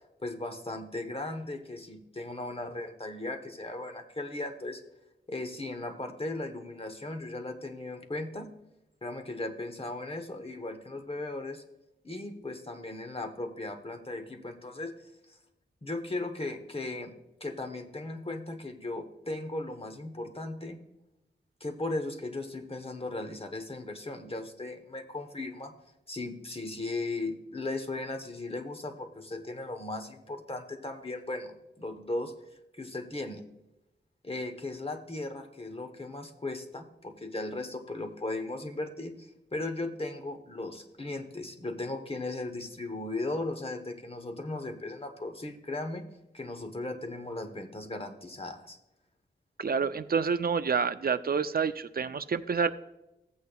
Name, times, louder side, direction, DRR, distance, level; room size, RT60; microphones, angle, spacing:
voice 1, 0.2-4.8 5.3-8.5 9.0-11.6 12.0-15.4 15.8-17.1 17.4-20.8 21.6-25.7 26.1-32.3 32.7-33.4 34.2-46.0 46.3-48.8, left 2 dB, 30° left, 5 dB, 1.0 m, -37 dB
voice 2, 49.6-52.7, right 5 dB, 55° right, 12 dB, 0.4 m, -28 dB
14.5 x 8.4 x 2.3 m, 0.92 s
wide cardioid pair, 90°, 19 cm